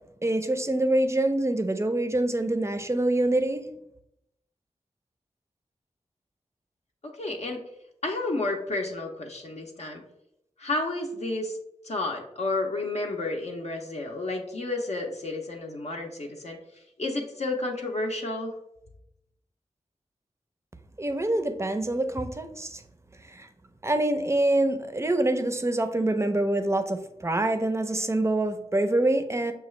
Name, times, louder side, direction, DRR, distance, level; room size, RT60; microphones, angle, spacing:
voice 1, 0.2-3.6 21.0-22.8 23.3-23.5 23.8-29.5, right 1 dB, 20° right, 8 dB, 0.4 m, -25 dB
voice 2, 7.0-7.6 8.0-10.0 10.6-11.6 11.8-16.6 17.0-18.5, left 2 dB, 65° left, 1 dB, 0.6 m, -31 dB
6.0 x 2.3 x 3.1 m, 0.82 s
wide cardioid pair, 65°, 13 cm